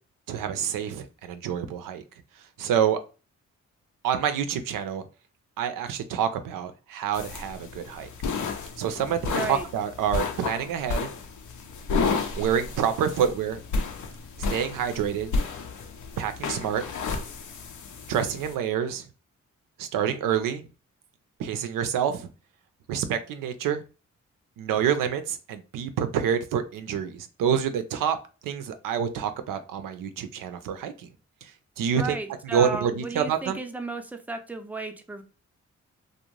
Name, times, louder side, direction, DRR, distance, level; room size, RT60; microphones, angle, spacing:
voice 1, 0.3-2.0 2.6-3.0 4.0-5.0 5.6-8.1 8.8-11.1 12.3-13.6 14.5-15.3 16.2-16.8 18.1-19.1 19.8-20.6 21.4-22.3 22.9-23.8 24.6-28.2 28.4-31.1 31.4-31.5 31.8-32.2 32.4-33.6, right 8 dB, 80° right, 0.5 m, -27 dB
sound 1, 7.1-18.6, left 4 dB, 65° left, 0.6 m, -32 dB
voice 2, 9.3-9.7 31.9-35.2, right 3 dB, 5° right, 0.5 m, -34 dB
2.5 x 2.1 x 3.0 m
supercardioid pair, 55°, 32 cm